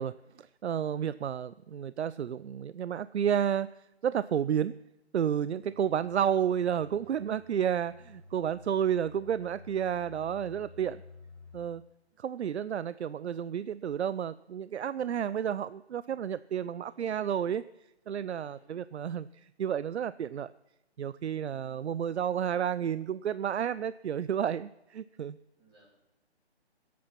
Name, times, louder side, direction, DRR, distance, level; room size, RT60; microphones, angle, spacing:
voice 1, 0.0-3.7 4.0-4.8 5.1-11.0 11.5-11.8 12.2-17.6 18.1-20.5 21.0-25.4, right 9 dB, 80° right, 17 dB, 0.5 m, -31 dB
sound 1, 5.6-11.6, left 3 dB, 10° left, 4.8 m, -52 dB
voice 2, 10.6-11.1 11.4-11.5 12.1-12.3 12.9-13.4 16.9-17.3 18.3-18.7 25.6-25.9, right 1 dB, 20° right, -6 dB, 6.0 m, -65 dB
19.5 x 8.5 x 5.9 m, 0.92 s
hypercardioid pair, 165°, 33 cm